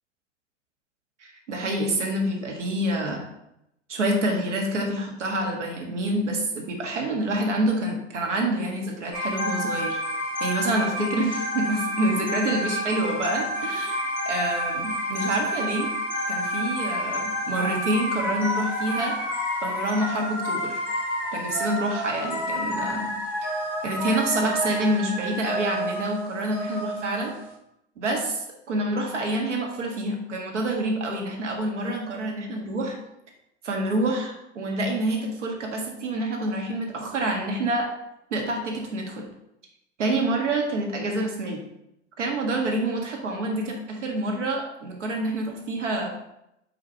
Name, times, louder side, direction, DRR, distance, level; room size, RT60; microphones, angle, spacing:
voice 1, 1.5-3.2 3.9-10.0 10.4-15.9 16.3-19.2 19.6-20.8 21.3-23.1 23.4-23.5 23.8-27.3 28.0-33.0 33.6-37.9 38.3-39.2 40.0-41.6 42.2-46.1, right 1 dB, 75° right, 1 dB, 1.6 m, -27 dB
sound 1, 9.1-27.5, equal, 5° right, 1.9 m, -29 dB
6.1 x 3.7 x 4.6 m, 0.82 s
figure-of-eight pair, 90°, 36 cm